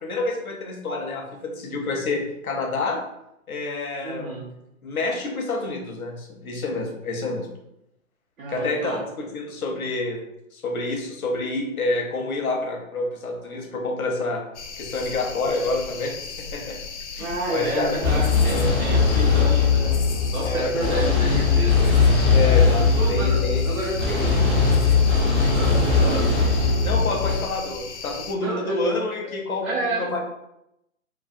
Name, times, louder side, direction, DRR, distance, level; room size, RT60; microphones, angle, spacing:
voice 1, 0.0-3.0 3.5-4.3 4.8-7.5 8.5-10.2 10.5-14.4 14.8-16.8 17.1-18.0 18.5-18.8 20.4-21.1 22.3-23.6 26.8-30.2, left 2 dB, 85° left, 1 dB, 0.9 m, -28 dB
voice 2, 4.0-4.5 8.4-9.0 17.2-20.0 20.3-21.8 23.0-24.4 25.5-26.3 28.4-28.8 29.6-30.0, right 2 dB, 75° right, -5 dB, 1.0 m, -30 dB
sound 1, 14.5-28.3, left 5 dB, 55° left, 0.5 m, -37 dB
sound 2, 18.0-27.4, left 4 dB, 20° right, 0.3 m, -20 dB
3.2 x 2.2 x 2.6 m, 0.83 s
hypercardioid pair, 145°, 42 cm